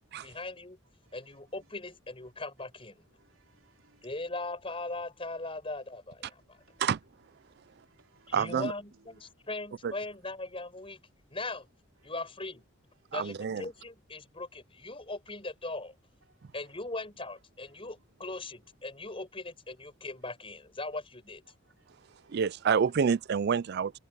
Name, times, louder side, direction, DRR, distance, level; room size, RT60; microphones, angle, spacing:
voice 1, 0.2-0.8 1.1-3.0 4.0-6.6 8.3-11.0 11.3-11.7 12.0-12.6 13.1-15.9 16.5-21.4, left 2 dB, 25° left, 6.1 m, -39 dB
voice 2, 3.2-4.1 6.5-6.8 7.4-8.3 12.0-12.1 17.8-17.9 21.8-22.4, right 3 dB, 75° right, 3.9 m, -66 dB
voice 3, 8.3-8.7 9.8-9.9 13.1-13.7 22.3-23.9, right 6 dB, 55° right, 0.4 m, -28 dB
head